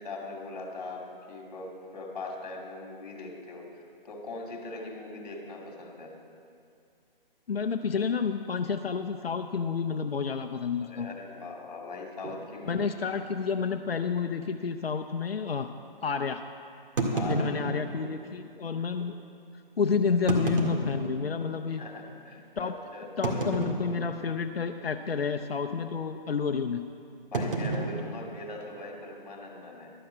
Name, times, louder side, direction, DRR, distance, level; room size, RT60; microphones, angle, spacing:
voice 1, 0.0-6.1 10.8-12.9 17.1-17.5 18.8-18.9 21.8-23.5 27.3-29.9, left 3 dB, 45° left, 1 dB, 2.5 m, -41 dB
voice 2, 7.5-11.1 12.7-15.7 16.0-16.4 17.2-19.1 19.8-21.8 22.6-22.7 23.2-26.8, left 5 dB, 90° left, 6 dB, 0.7 m, -30 dB
sound 1, 12.2-12.4 13.2-13.3 13.6-13.7 14.3-14.4 17.0-18.2 19.0-19.1 20.1-21.6 22.1-22.2 23.2-24.3 24.6-25.0 25.2-25.5 27.3-29.0, right 2 dB, 65° right, 2.1 m, -31 dB
12.0 x 7.8 x 7.5 m, 2.4 s
hypercardioid pair, 155°, 29 cm